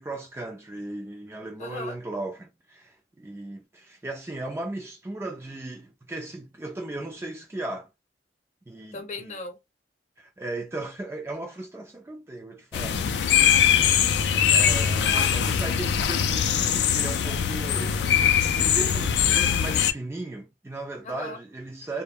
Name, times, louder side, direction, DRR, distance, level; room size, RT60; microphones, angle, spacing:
voice 1, 0.0-7.9 8.7-9.0 10.2-13.2 14.3-22.0, right 2 dB, 15° right, 0.3 m, -36 dB
voice 2, 1.6-2.0 8.9-9.6 13.2-14.0 21.0-21.4, left 2 dB, 40° left, 0.7 m, -38 dB
sound 1, 12.7-19.9, left 8 dB, 70° left, 0.3 m, -22 dB
2.1 x 2.1 x 3.3 m
head